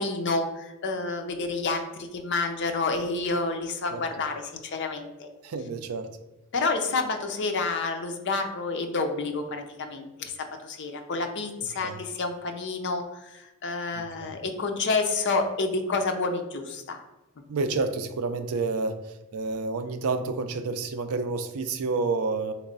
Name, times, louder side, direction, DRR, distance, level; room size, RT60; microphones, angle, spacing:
voice 1, 0.0-5.3 6.5-10.3 10.6-17.0, left 3 dB, 55° left, 5 dB, 0.5 m, -29 dB
voice 2, 5.4-6.1 11.8-12.0 13.9-14.3 17.5-22.5, right 3 dB, 75° right, 9 dB, 0.4 m, -29 dB
3.6 x 3.1 x 3.9 m, 1.0 s
head